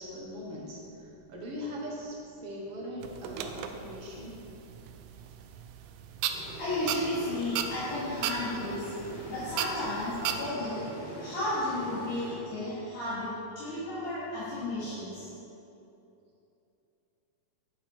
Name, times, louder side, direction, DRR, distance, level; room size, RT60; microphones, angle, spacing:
voice 1, 0.0-4.5, equal, 55° right, -3 dB, 2.0 m, -40 dB
sound 1, 3.0-10.5, right 8 dB, 85° right, 2.1 m, -37 dB
sound 2, 6.3-13.0, equal, 25° left, 2.4 m, -43 dB
voice 2, 6.6-8.9 9.3-13.3 13.6-15.3, left 1 dB, 85° left, -12 dB, 3.7 m, -33 dB
11.0 x 8.8 x 4.4 m, 2.9 s
omnidirectional pair, 3.4 m